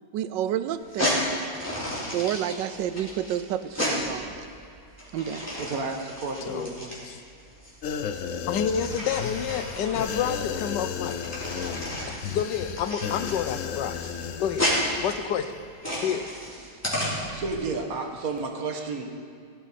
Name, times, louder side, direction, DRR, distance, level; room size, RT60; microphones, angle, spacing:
voice 1, 0.1-1.4 2.1-4.4 5.1-5.4, right 10 dB, 90° right, 12 dB, 1.3 m, -30 dB
sound 1, 0.8-17.5, equal, 10° left, 3.4 m, -32 dB
voice 2, 5.5-6.9 15.9-16.2 16.6-16.8 17.3-19.1, right 4 dB, 55° right, 3 dB, 1.6 m, -32 dB
sound 2, 7.8-15.2 15.5-15.6, left 7 dB, 65° left, 0.8 m, -34 dB
voice 3, 8.5-11.2 11.6-11.8 12.1-14.0 14.4-14.7 15.0-15.6 16.0-16.3, left 8 dB, 80° left, 11 dB, 1.3 m, -29 dB
16.0 x 13.0 x 4.2 m, 2.4 s
omnidirectional pair, 1.9 m